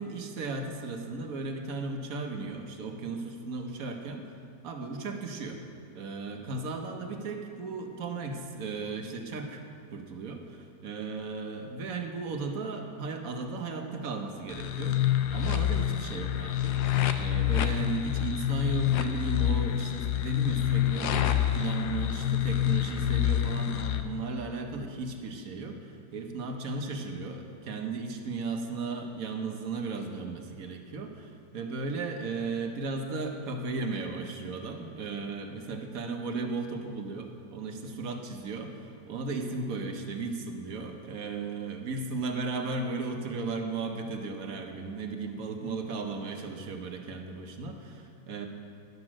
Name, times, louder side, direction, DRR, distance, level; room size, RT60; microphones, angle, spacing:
voice 1, 0.0-4.3 4.6-5.6 5.9-9.6 9.9-15.0 15.3-16.8 17.2-48.5, right 3 dB, 60° right, 4 dB, 1.3 m, -35 dB
sound 1, 14.5-24.0, left 12 dB, 75° left, 1.2 m, -27 dB
11.0 x 8.2 x 6.1 m, 2.4 s
omnidirectional pair, 1.8 m